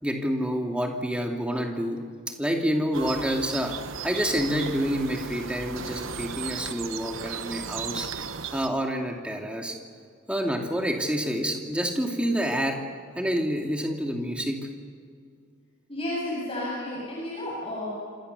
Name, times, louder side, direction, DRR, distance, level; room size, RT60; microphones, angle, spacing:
voice 1, 0.0-8.3 8.5-9.8 10.3-12.8 13.2-14.6, equal, 5° right, 2 dB, 2.5 m, -28 dB
sound 1, 2.9-8.7, right 6 dB, 65° right, 1.0 m, -36 dB
voice 2, 15.9-17.9, left 1 dB, 25° left, -5 dB, 7.3 m, -32 dB
27.5 x 26.5 x 6.9 m, 2.2 s
head